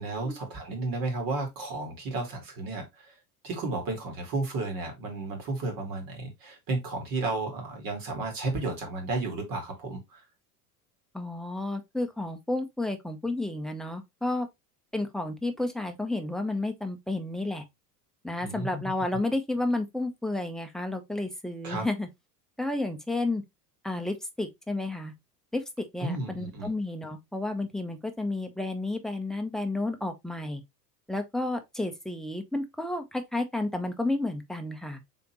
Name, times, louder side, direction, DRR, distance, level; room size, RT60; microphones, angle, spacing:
voice 1, 0.0-2.9 3.4-10.2 18.4-18.8 21.6-21.8 26.0-26.7, right 2 dB, 45° right, 2.2 m, -33 dB
voice 2, 11.1-14.5 14.9-17.6 18.2-22.1 22.6-23.4 23.8-25.1 25.5-30.6 31.1-35.0, left 2 dB, ahead, 0.6 m, -31 dB
4.0 x 3.3 x 2.9 m
hypercardioid pair, 80°, 48 cm